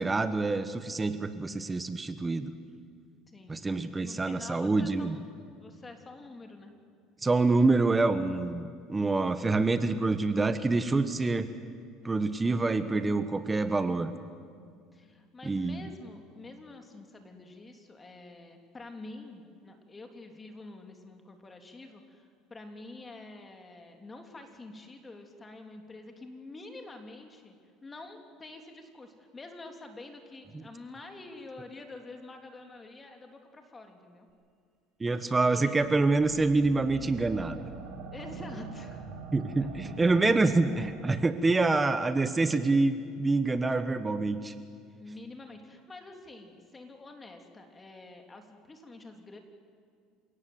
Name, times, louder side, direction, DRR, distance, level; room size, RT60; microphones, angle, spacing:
voice 1, 0.0-2.5 3.5-5.2 7.2-11.5 12.0-14.1 15.4-15.8 35.0-37.6 39.3-44.5, right 3 dB, 15° right, 10 dB, 1.3 m, -26 dB
voice 2, 3.3-3.6 4.0-6.7 14.9-27.6 27.8-34.3 35.5-35.8 38.1-39.1 45.0-49.4, left 2 dB, 20° left, 4 dB, 3.2 m, -47 dB
sound 1, 35.7-41.3, right 5 dB, 70° right, 5.9 m, -44 dB
29.0 x 18.0 x 8.0 m, 2.2 s
supercardioid pair, 115°, 0 cm